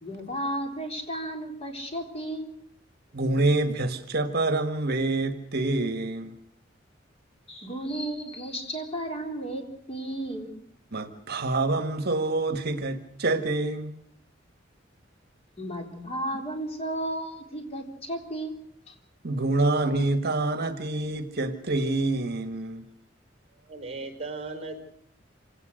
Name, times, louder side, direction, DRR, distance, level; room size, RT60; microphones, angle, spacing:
voice 1, 0.0-2.5 7.5-9.6 9.9-10.5 15.6-18.5 18.9-19.0, right 1 dB, 30° left, 3.9 m, -33 dB
voice 2, 3.1-6.3 10.9-13.9 19.2-22.8, right 2 dB, 55° right, 1.6 m, -26 dB
voice 3, 23.5-24.8, right 3 dB, 30° right, 4.5 m, -37 dB
26.5 x 18.0 x 6.5 m
head